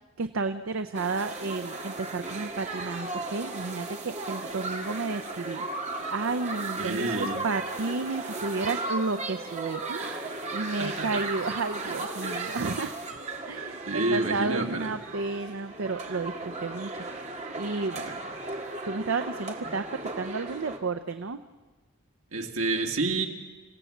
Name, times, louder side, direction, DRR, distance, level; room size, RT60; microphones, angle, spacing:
voice 1, 0.2-13.2 13.5-17.2 17.6-18.0 18.9-19.8 20.1-21.4, right 3 dB, 75° right, 9 dB, 0.6 m, -32 dB
sound 1, 0.9-20.8, right 2 dB, 35° right, 1.9 m, -36 dB
voice 2, 6.8-7.4 10.8-11.2 12.2-12.4 13.8-14.9 18.0-18.2 22.3-23.3, right 3 dB, 90° right, 3 dB, 2.1 m, -29 dB
26.5 x 16.0 x 7.2 m, 1.3 s
head